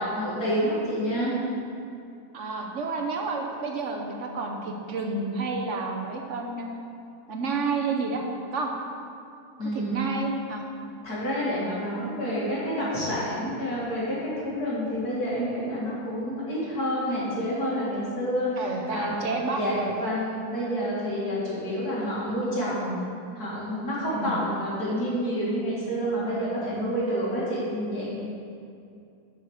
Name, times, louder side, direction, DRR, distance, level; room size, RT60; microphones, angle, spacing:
voice 1, 0.0-1.4 9.6-10.0 11.0-19.2 19.5-23.0 23.3-28.2, equal, 75° left, -7 dB, 2.9 m, -28 dB
voice 2, 2.3-6.7 7.3-8.2 8.5-8.7 9.7-10.6 18.6-20.1 24.1-24.4, right 3 dB, 55° right, 2 dB, 1.1 m, -30 dB
7.9 x 5.8 x 6.4 m, 2.5 s
omnidirectional pair, 1.6 m